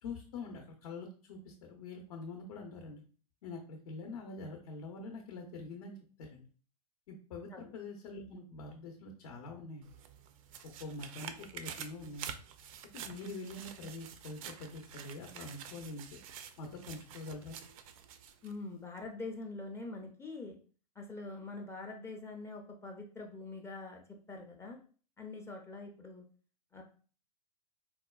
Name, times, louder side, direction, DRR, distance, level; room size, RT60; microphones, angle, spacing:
voice 1, 0.0-3.0 3.4-6.4 7.1-9.9 10.8-12.4 12.9-16.2 16.6-17.6, left 3 dB, 65° left, 2 dB, 0.7 m, -45 dB
sound 1, 9.8-18.6 19.0-19.1, right 8 dB, 60° right, 0.4 m, -48 dB
voice 2, 18.4-20.6 21.0-24.0 24.3-24.8 25.2-26.2 26.7-26.8, left 3 dB, 15° left, 2 dB, 0.4 m, -44 dB
4.1 x 2.2 x 2.3 m, 0.41 s
hypercardioid pair, 110°, 20 cm